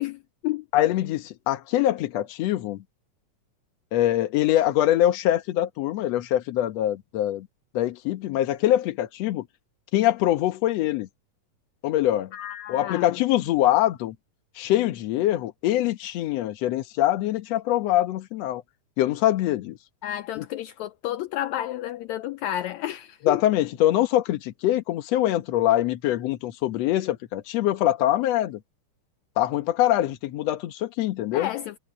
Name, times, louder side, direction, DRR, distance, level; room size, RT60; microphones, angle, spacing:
voice 1, 0.0-0.6 12.3-13.2 20.0-23.4 31.3-31.8, left 13 dB, 80° left, 1.6 m, -31 dB
voice 2, 0.7-2.8 3.9-7.5 7.7-9.5 9.9-11.1 11.8-12.3 12.7-14.2 14.6-18.6 19.0-19.8 20.4-20.5 23.2-28.6 29.4-31.5, left 13 dB, 65° left, 2.0 m, -23 dB
omnidirectional pair, 3.7 m